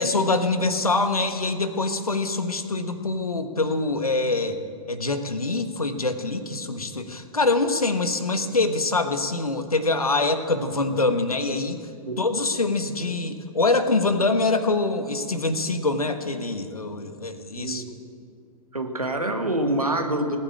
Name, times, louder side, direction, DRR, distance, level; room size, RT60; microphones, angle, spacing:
voice 1, 0.0-4.6 4.9-11.8 12.2-17.8, left 3 dB, 85° left, 9 dB, 1.3 m, -24 dB
voice 2, 18.7-20.4, right 1 dB, 90° right, 5 dB, 1.7 m, -26 dB
18.5 x 8.8 x 8.7 m, 2.3 s
figure-of-eight pair, 105°, 18 cm